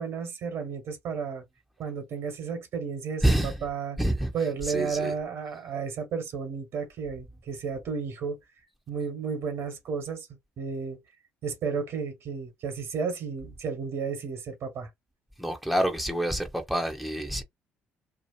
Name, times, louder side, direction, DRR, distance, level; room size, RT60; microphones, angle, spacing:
voice 1, 0.0-1.4 1.8-4.0 4.3-8.4 8.9-10.3 10.6-11.0 11.4-14.9, right 5 dB, 60° right, 1.4 m, -32 dB
voice 2, 3.2-3.6 4.0-4.3 4.6-5.1 15.4-17.4, right 1 dB, ahead, 0.9 m, -27 dB
2.9 x 2.4 x 2.5 m
hypercardioid pair, 60°, 5 cm